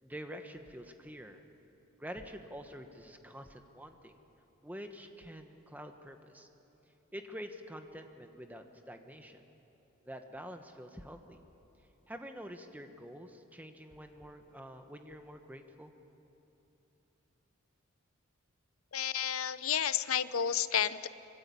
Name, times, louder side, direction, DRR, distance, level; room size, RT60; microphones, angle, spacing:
voice 1, 0.0-1.4 2.0-4.2 4.6-6.5 7.1-9.4 10.0-11.4 12.1-15.9, equal, 10° right, 6 dB, 1.2 m, -47 dB
voice 2, 18.9-21.1, left 9 dB, 90° left, 14 dB, 0.7 m, -31 dB
25.0 x 21.0 x 8.6 m, 3.0 s
head